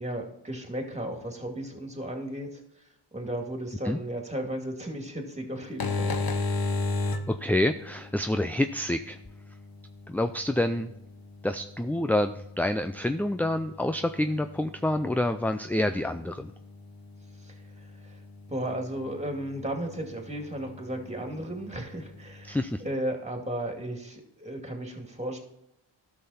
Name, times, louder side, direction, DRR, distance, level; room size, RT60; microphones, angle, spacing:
voice 1, 0.0-2.6 3.1-6.2 17.4-18.2 18.5-22.6 22.8-25.4, right 1 dB, 15° right, 2 dB, 2.4 m, -35 dB
sound 1, 5.6-22.9, left 3 dB, 45° left, 1.1 m, -37 dB
voice 2, 7.1-9.2 10.1-10.9 11.4-16.5 22.4-22.8, left 1 dB, 5° left, 8 dB, 0.3 m, -27 dB
12.0 x 5.8 x 4.2 m, 0.81 s
cardioid pair, 45°, 49 cm